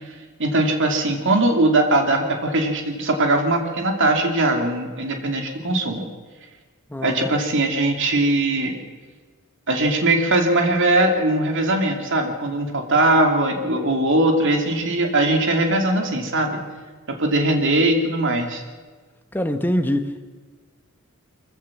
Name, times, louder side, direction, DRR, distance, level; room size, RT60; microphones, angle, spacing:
voice 1, 0.4-6.0 7.0-8.8 9.7-16.6 17.1-18.6, right 2 dB, 55° right, 2.6 m, -20 dB
voice 2, 6.9-7.3 19.3-20.2, equal, 10° left, 1.2 m, -24 dB
24.0 x 15.0 x 7.3 m
head